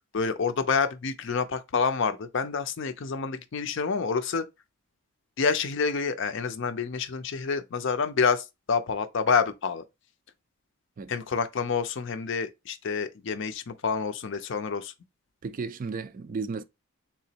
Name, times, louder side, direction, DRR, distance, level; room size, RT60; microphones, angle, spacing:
voice 1, 0.1-4.4 5.4-9.8 11.1-14.9, left 5 dB, 55° left, 0.5 m, -28 dB
voice 2, 15.4-16.6, right 4 dB, 40° right, 0.3 m, -34 dB
3.7 x 2.9 x 2.8 m
head